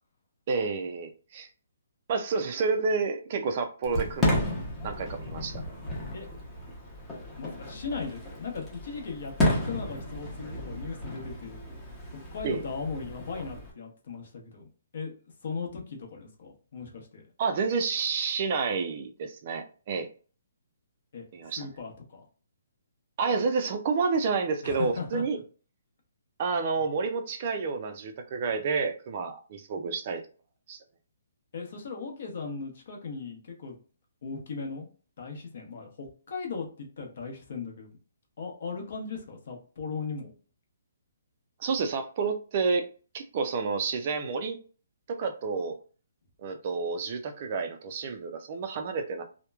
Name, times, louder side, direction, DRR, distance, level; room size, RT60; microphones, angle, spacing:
voice 1, 0.5-1.5 2.1-4.5 4.8-5.6 12.4-12.6 17.4-20.1 21.3-21.7 23.2-25.4 26.4-30.2 30.7-30.8 41.6-42.9 43.1-44.6 45.1-45.7 46.4-49.2, right 4 dB, 35° right, 0.3 m, -29 dB
Fireworks, 3.8-13.7, left 1 dB, 5° left, 0.6 m, -33 dB
voice 2, 7.4-11.6 12.1-14.7 14.9-15.1 15.4-17.2 21.1-21.2 21.6-22.2 24.6-25.2 31.5-33.8 34.2-34.9 35.2-37.9 38.4-40.3, left 4 dB, 50° left, 0.9 m, -37 dB
2.9 x 2.1 x 2.2 m
hypercardioid pair, 170°, 0 cm